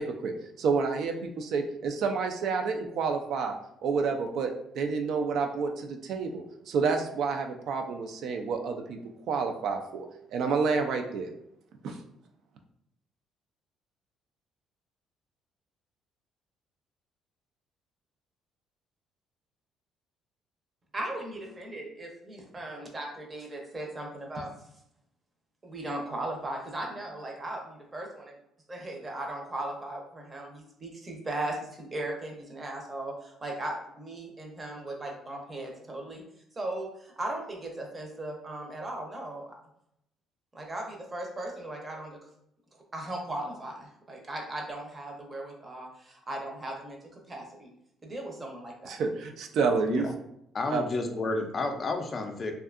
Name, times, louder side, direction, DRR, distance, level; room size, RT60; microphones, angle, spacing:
voice 1, 0.0-3.6 3.8-9.0 9.3-11.3 11.8-12.0 48.9-50.1 50.7-50.8, right 5 dB, 70° right, 4 dB, 0.3 m, -29 dB
voice 2, 20.9-24.5 25.6-28.3 28.7-36.2 36.5-39.5 40.5-42.2 42.9-47.7 48.0-48.9, right 1 dB, 25° right, 1 dB, 0.6 m, -37 dB
voice 3, 50.5-52.5, left 3 dB, 35° left, 4 dB, 0.4 m, -31 dB
2.6 x 2.3 x 2.4 m, 0.77 s
cardioid pair, 110°, 0 cm